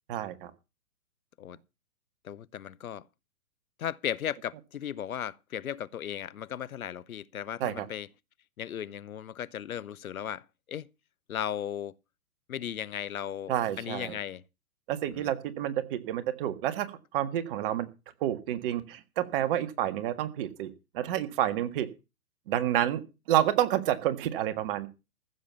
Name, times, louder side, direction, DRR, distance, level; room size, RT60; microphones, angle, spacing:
voice 1, 0.1-0.5 7.6-7.9 13.5-14.1 14.9-16.9 17.1-17.9 18.2-21.9 22.5-23.0 23.3-24.9, right 12 dB, 35° right, 1.7 m, -29 dB
voice 2, 2.2-3.1 3.8-8.1 8.6-10.9 11.3-12.0 12.5-14.4 15.1-15.3, left 9 dB, 70° left, 0.8 m, -36 dB
15.0 x 7.3 x 7.0 m
hypercardioid pair, 130°, 44 cm